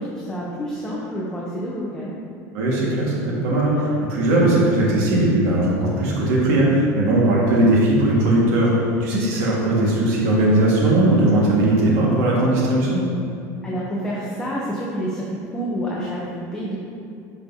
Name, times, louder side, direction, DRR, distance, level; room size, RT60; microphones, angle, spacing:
voice 1, 0.0-2.1 13.6-16.8, equal, 10° left, -6 dB, 0.7 m, -28 dB
voice 2, 2.5-8.7 9.0-13.0, right 1 dB, 65° right, -5 dB, 1.6 m, -18 dB
11.0 x 5.2 x 2.7 m, 2.5 s
cardioid pair, 175°, 8 cm